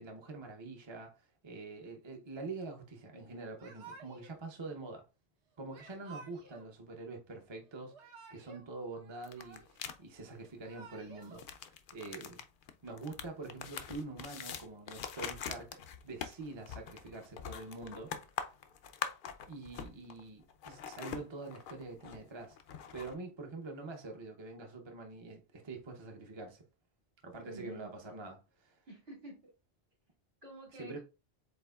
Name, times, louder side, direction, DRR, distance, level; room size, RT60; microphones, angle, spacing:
voice 1, 0.0-5.0 5.6-12.4 12.8-18.5 19.5-22.6 22.9-26.6 27.2-28.8 30.8-31.0, right 3 dB, 30° right, 0.7 m, -45 dB
Yell / Crying sobbing, 3.6-4.4 5.7-6.7 7.7-8.7 9.0-9.9 10.5-11.4, right 4 dB, 90° right, 1.2 m, -53 dB
sound 1, 9.2-10.0 11.2-20.2 20.5-23.1, left 7 dB, 60° left, 0.6 m, -43 dB
voice 2, 27.4-27.9 28.9-29.4 30.4-31.0, right 1 dB, 65° right, 2.6 m, -49 dB
7.7 x 3.0 x 2.3 m
omnidirectional pair, 1.1 m